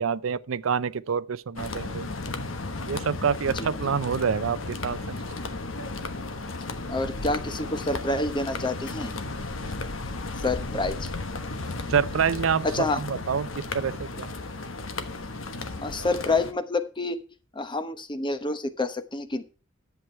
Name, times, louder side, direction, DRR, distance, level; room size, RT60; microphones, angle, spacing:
voice 1, 0.0-2.1 2.9-5.2 11.9-12.7 12.9-14.3, right 6 dB, 75° right, 0.5 m, -27 dB
sound 1, 1.6-16.5, left 3 dB, 70° left, 1.2 m, -34 dB
voice 2, 6.9-9.1 10.4-11.1 12.6-13.0 15.8-17.2 17.5-19.4, left 2 dB, 25° left, 1.0 m, -28 dB
11.0 x 7.8 x 4.5 m
head